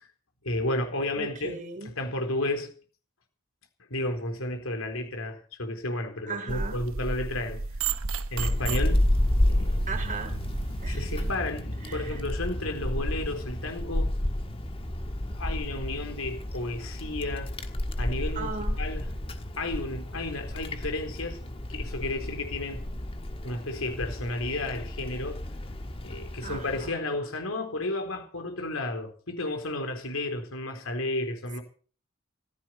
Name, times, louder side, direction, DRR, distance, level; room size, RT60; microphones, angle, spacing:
voice 1, 0.4-1.6 1.8-2.7 3.9-7.6 8.3-9.1 9.4-9.8 10.9-14.1 15.4-17.5 18.0-19.1 19.6-21.4 21.7-22.8 23.4-25.4 26.0-31.6, left 2 dB, 80° left, 4.0 m, -32 dB
voice 2, 1.2-1.9 6.3-6.8 9.9-10.3 10.8-11.1 11.8-12.2 18.3-18.9 26.4-27.0, right 4 dB, 40° right, 3.2 m, -37 dB
sound 1, 6.5-11.3, right 4 dB, 80° right, 1.1 m, -33 dB
Wind, 8.4-26.9, left 1 dB, 25° left, 1.5 m, -31 dB
15.0 x 14.5 x 5.7 m
head